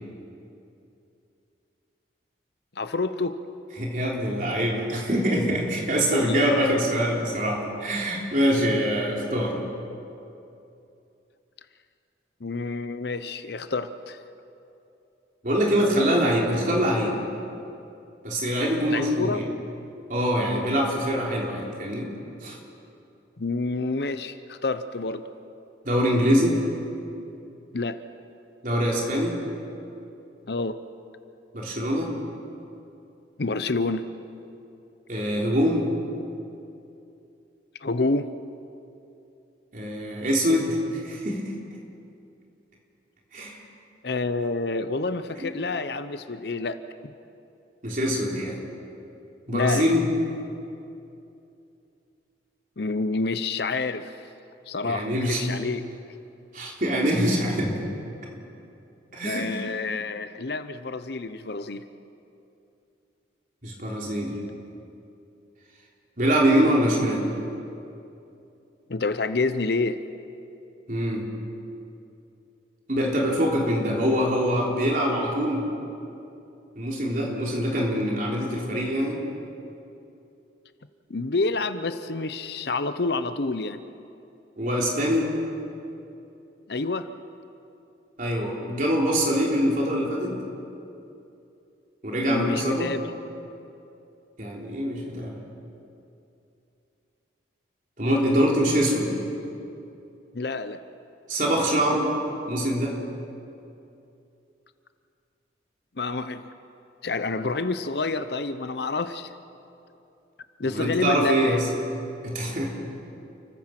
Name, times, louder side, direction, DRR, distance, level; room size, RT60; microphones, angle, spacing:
voice 1, 2.8-3.4 6.0-6.8 12.4-14.2 18.9-19.4 23.4-25.2 27.7-28.0 30.5-30.8 33.4-34.0 37.8-38.3 44.0-46.8 49.5-49.9 52.8-54.1 54.7-55.9 59.2-61.8 68.9-70.0 81.1-83.8 86.7-87.1 92.3-93.1 100.3-100.8 106.0-106.4 107.0-109.3 110.6-111.6, left 3 dB, 60° left, 11 dB, 0.8 m, -28 dB
voice 2, 3.8-9.6 15.4-17.2 18.2-19.4 20.1-22.1 22.4-22.6 25.8-26.6 28.6-29.4 31.5-32.1 35.1-35.9 39.7-41.4 43.3-43.6 45.4-45.5 47.8-48.6 49.5-50.1 54.8-55.4 56.5-57.8 59.1-59.6 63.6-64.4 66.2-67.3 70.9-71.3 72.9-75.7 76.8-79.2 84.6-85.3 88.2-90.4 92.0-92.9 94.4-95.4 98.0-99.2 101.3-102.1 102.4-102.9 110.6-111.7 112.2-112.7, equal, 45° right, -2 dB, 3.6 m, -24 dB
30.0 x 15.0 x 6.0 m, 2.7 s
head